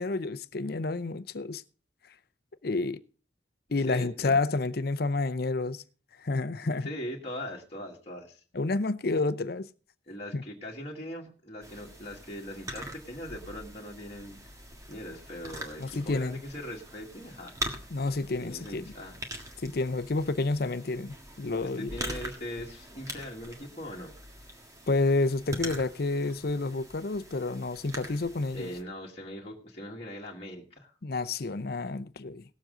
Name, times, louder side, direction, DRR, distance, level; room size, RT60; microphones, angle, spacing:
voice 1, 0.0-1.6 2.6-3.0 3.7-5.8 6.2-6.9 8.5-9.7 10.3-10.4 15.8-16.4 17.9-18.8 19.6-21.9 24.9-28.7 31.0-32.4, left 3 dB, 55° left, 0.6 m, -29 dB
voice 2, 3.8-4.4 6.8-8.4 10.1-14.4 14.9-17.6 18.4-19.2 21.7-24.1 28.5-30.9, equal, 30° left, 1.8 m, -40 dB
sound 1, 11.6-28.8, equal, 20° right, 1.6 m, -43 dB
18.5 x 7.5 x 3.8 m
head